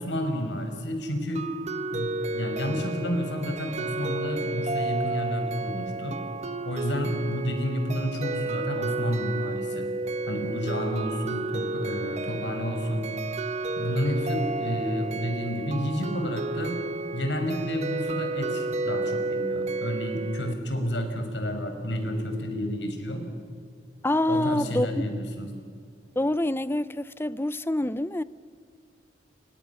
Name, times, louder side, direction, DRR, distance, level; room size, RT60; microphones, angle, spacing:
voice 1, 0.0-1.5 1.9-6.2 6.7-9.9 10.2-13.1 13.8-16.8 17.1-23.2 24.3-25.5, equal, 85° left, 5.4 m, -30 dB
sound 1, 1.3-20.5, right 2 dB, 40° right, 1.0 m, -32 dB
voice 2, 24.0-25.0 26.2-28.2, left 1 dB, 15° left, 0.6 m, -26 dB
29.5 x 25.0 x 7.1 m
head